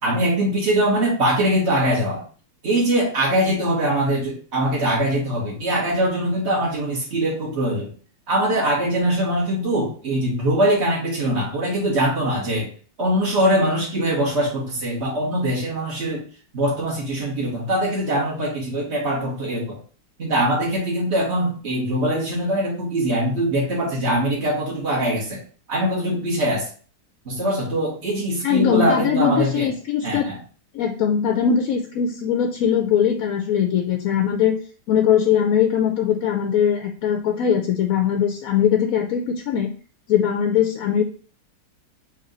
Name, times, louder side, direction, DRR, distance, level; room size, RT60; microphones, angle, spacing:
voice 1, 0.0-2.2 2.6-7.9 8.3-12.7 13.0-16.3 16.5-19.8 20.2-25.4 25.7-26.7 27.3-29.7 30.0-30.4, right 1 dB, 45° right, -4 dB, 2.0 m, -22 dB
voice 2, 28.4-30.3 30.7-34.6 34.9-39.7 40.1-41.0, left 8 dB, 70° left, 4 dB, 0.9 m, -20 dB
4.3 x 3.0 x 3.9 m, 0.41 s
omnidirectional pair, 1.7 m